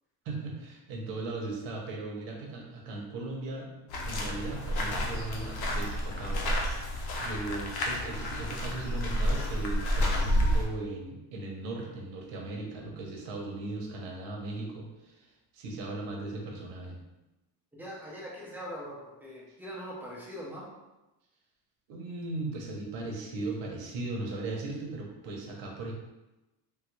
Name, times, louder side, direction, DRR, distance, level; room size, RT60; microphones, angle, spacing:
voice 1, 0.2-6.9 7.2-17.0 21.9-25.9, right 2 dB, 90° right, 0 dB, 0.9 m, -38 dB
sound 1, 3.9-10.6, equal, 60° left, 0.7 m, -30 dB
voice 2, 17.7-20.6, equal, 5° right, -5 dB, 0.5 m, -42 dB
3.3 x 2.3 x 3.0 m, 1.0 s
cardioid pair, 160°, 42 cm